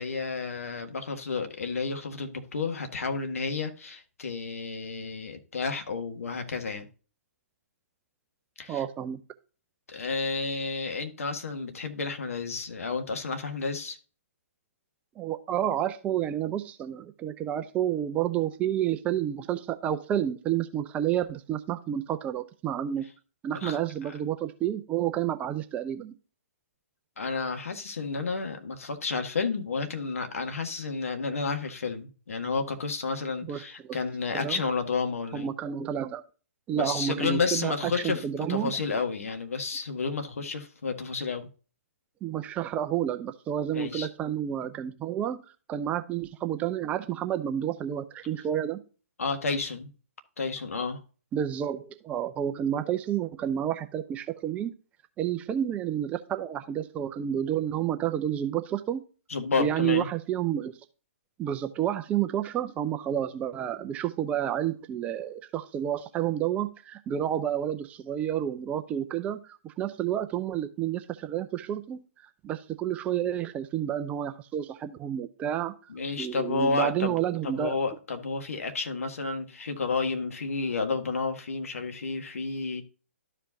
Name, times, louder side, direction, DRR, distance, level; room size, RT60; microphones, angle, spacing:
voice 1, 0.0-6.9 8.6-8.8 9.9-14.0 23.5-23.8 27.2-35.5 36.7-38.2 38.5-41.5 43.7-44.1 49.2-49.9 50.4-51.0 59.3-60.1 75.9-77.2 77.4-82.8, left 4 dB, 65° left, 1.6 m, -31 dB
voice 2, 8.7-9.2 15.2-23.0 23.4-26.1 33.4-34.0 34.3-34.6 35.3-36.2 36.7-38.7 42.2-45.4 45.7-48.8 51.3-54.7 55.2-59.0 59.6-60.7 61.4-75.7 76.2-77.8, right 10 dB, 15° right, 0.5 m, -30 dB
12.5 x 5.0 x 2.7 m
figure-of-eight pair, 130°, 8 cm